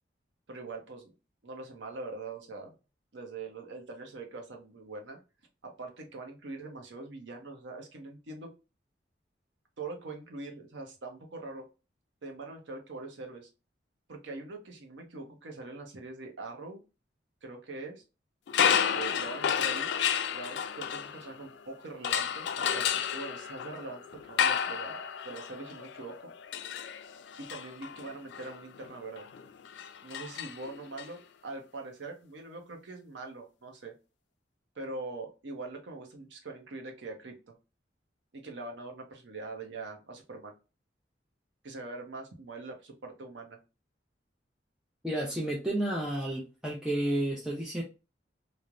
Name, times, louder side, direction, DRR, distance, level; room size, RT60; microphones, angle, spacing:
voice 1, 0.5-1.1 1.4-2.7 3.1-5.2 5.6-8.5 9.8-11.6 12.2-13.5 14.1-16.8 17.4-18.0 18.6-19.9 20.3-26.3 27.4-29.3 30.0-33.9 34.8-37.6 38.3-40.5 41.6-43.6, right 3 dB, 80° right, 3 dB, 0.7 m, -43 dB
sound 1, 18.5-21.6 22.0-31.1, left 8 dB, 70° left, 0.3 m, -31 dB
voice 2, 45.0-47.8, right 1 dB, 5° right, -4 dB, 0.5 m, -31 dB
3.1 x 2.0 x 2.4 m, 0.30 s
head